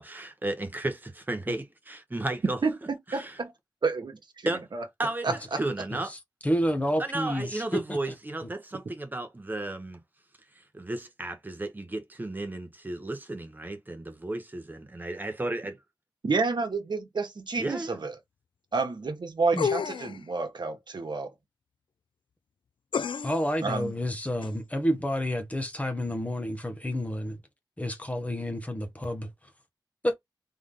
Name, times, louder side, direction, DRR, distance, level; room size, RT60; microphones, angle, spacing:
voice 1, 0.0-2.6 3.1-3.4 4.4-4.6 5.0-6.1 7.0-10.0 10.7-15.8 17.6-18.0, right 2 dB, 25° right, 1.1 m, -34 dB
voice 2, 2.6-3.5 3.8-4.8 5.2-5.6 16.2-18.1 18.7-21.3 23.6-23.9, right 4 dB, 65° right, 1.3 m, -30 dB
voice 3, 6.4-8.0 19.5-19.7 23.2-27.4 27.8-29.3 30.0-30.2, equal, 15° left, 1.2 m, -29 dB
sound 1, 19.6-20.2 22.9-23.5 24.4-24.5, left 6 dB, 90° left, 0.4 m, -30 dB
3.8 x 3.5 x 3.8 m
wide cardioid pair, 100°, 8 cm